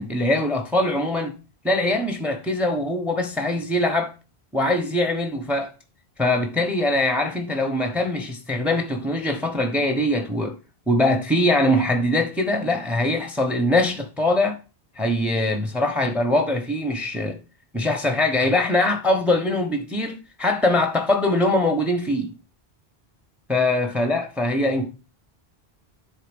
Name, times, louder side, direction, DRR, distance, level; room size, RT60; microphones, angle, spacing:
voice 1, 0.0-1.4 1.6-4.1 4.5-5.7 6.2-10.6 10.9-14.6 15.0-17.4 17.7-22.3 23.5-24.9, left 1 dB, ahead, 1.0 m, -22 dB
10.0 x 4.0 x 5.3 m
omnidirectional pair, 1.1 m